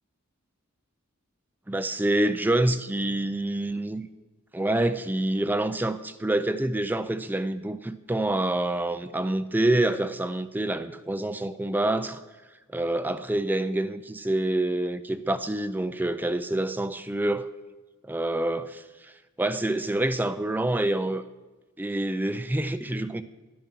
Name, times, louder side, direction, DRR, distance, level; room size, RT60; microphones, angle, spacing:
voice 1, 1.7-4.1 4.5-12.2 12.7-17.5 18.0-21.2 21.8-23.2, right 1 dB, 10° right, 0.4 m, -27 dB
11.5 x 10.5 x 5.8 m
head